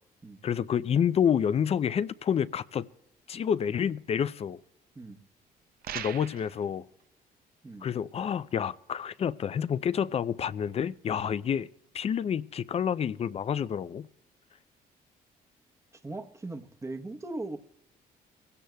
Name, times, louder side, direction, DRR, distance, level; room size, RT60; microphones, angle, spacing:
voice 1, 0.4-2.9 3.3-4.6 5.9-6.8 7.8-11.7 11.9-14.1, left 8 dB, 40° left, 0.4 m, -28 dB
sound 1, 5.8-6.6, right 10 dB, 70° right, 0.7 m, -38 dB
voice 2, 15.9-17.6, right 2 dB, 20° right, 1.0 m, -39 dB
21.5 x 16.5 x 2.3 m
cardioid pair, 105°, 16 cm